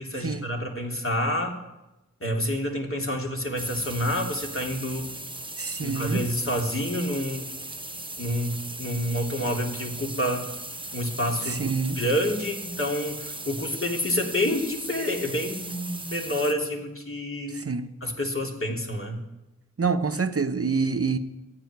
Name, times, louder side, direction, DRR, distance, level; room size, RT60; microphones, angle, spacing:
voice 1, 0.0-1.6 2.2-5.1 5.8-7.5 8.2-10.5 10.9-11.7 11.9-17.6 18.0-19.2, left 1 dB, 45° left, 3.1 m, -28 dB
sound 1, 3.6-16.5, right 2 dB, 15° right, 1.0 m, -38 dB
voice 2, 5.6-6.3 11.4-12.0 17.5-17.9 19.8-21.2, right 4 dB, 50° right, 0.9 m, -26 dB
14.5 x 9.8 x 9.5 m
wide cardioid pair, 65°, 30 cm